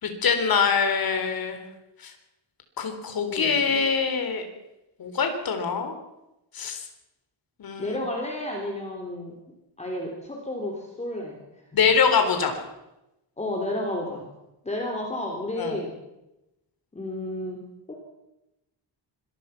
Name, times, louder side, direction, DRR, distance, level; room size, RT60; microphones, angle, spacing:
voice 1, 0.0-1.6 2.0-2.1 2.8-4.4 5.0-6.0 6.5-6.8 7.6-7.9 11.7-12.6 15.6-15.8, left 6 dB, 50° left, 6 dB, 3.7 m, -24 dB
voice 2, 3.3-3.7 7.8-9.3 9.8-11.4 13.4-14.3 14.6-15.9 16.9-17.6 17.9-18.0, left 1 dB, 15° left, 0 dB, 3.3 m, -31 dB
25.5 x 19.5 x 5.9 m, 0.92 s
wide cardioid pair, 170°, 45 cm